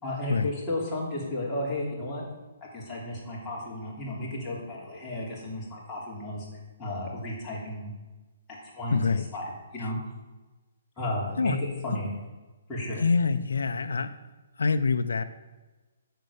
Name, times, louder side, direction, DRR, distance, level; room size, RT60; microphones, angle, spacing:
voice 1, 0.0-2.2 2.7-6.5 6.8-7.9 8.5-9.0 9.3-10.0 11.0-12.1 12.7-13.0, left 1 dB, 15° left, -6 dB, 3.1 m, -33 dB
voice 2, 8.9-9.2 9.8-9.9 11.4-11.6 13.0-14.1 14.6-15.2, left 4 dB, 85° left, 8 dB, 0.6 m, -25 dB
7.6 x 6.8 x 6.9 m, 1.2 s
hypercardioid pair, 155°, 0 cm